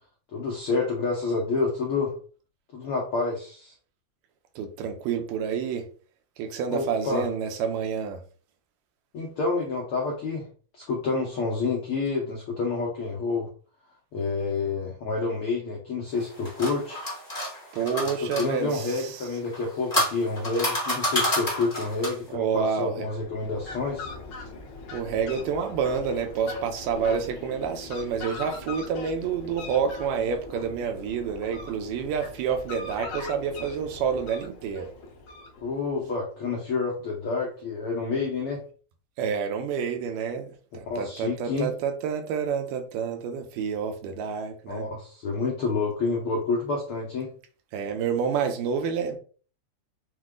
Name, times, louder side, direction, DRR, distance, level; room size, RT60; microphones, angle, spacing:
voice 1, 0.3-2.1 2.7-3.7 6.7-7.3 9.1-10.5 10.7-13.5 14.1-17.0 18.2-24.1 35.6-38.6 40.9-41.7 44.7-47.3, left 4 dB, 90° left, 1.2 m, -28 dB
voice 2, 4.6-5.9 6.4-8.2 17.7-19.2 22.3-23.1 24.9-34.9 39.2-44.8 47.7-49.2, right 6 dB, 85° right, 2.3 m, -28 dB
sound 1, 16.2-18.5 19.4-22.3, left 1 dB, 15° left, 0.8 m, -28 dB
Fowl, 22.9-36.0, left 3 dB, 60° left, 1.3 m, -40 dB
6.2 x 2.2 x 3.7 m
omnidirectional pair, 3.8 m